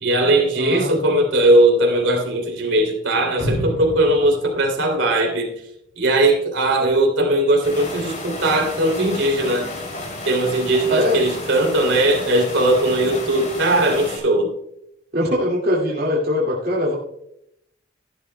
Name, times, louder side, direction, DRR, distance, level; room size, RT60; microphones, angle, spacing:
voice 1, 0.0-5.5 6.0-9.7 10.2-14.5, right 1 dB, 80° right, 2 dB, 2.9 m, -19 dB
voice 2, 0.6-1.0 10.9-11.2 15.1-17.0, left 1 dB, 50° right, -4 dB, 2.2 m, -21 dB
sound 1, 3.4-5.5 5.9-6.0, equal, 65° left, 4.4 m, -30 dB
sound 2, 7.6-14.2, left 2 dB, 40° left, 2.8 m, -32 dB
14.0 x 11.5 x 2.2 m, 0.76 s
head